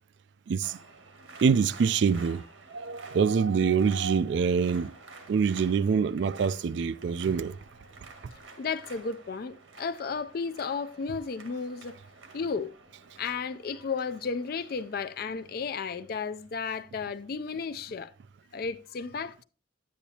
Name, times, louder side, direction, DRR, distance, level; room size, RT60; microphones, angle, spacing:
voice 1, 0.5-0.8 1.4-2.4 2.7-4.9 5.3-7.6, right 6 dB, 60° right, 0.3 m, -25 dB
sound 1, 0.6-16.1, right 3 dB, 80° right, 1.7 m, -51 dB
voice 2, 8.6-11.9 12.3-12.7 13.2-18.1 18.5-19.4, left 5 dB, 50° left, 0.3 m, -33 dB
9.9 x 8.5 x 2.8 m
head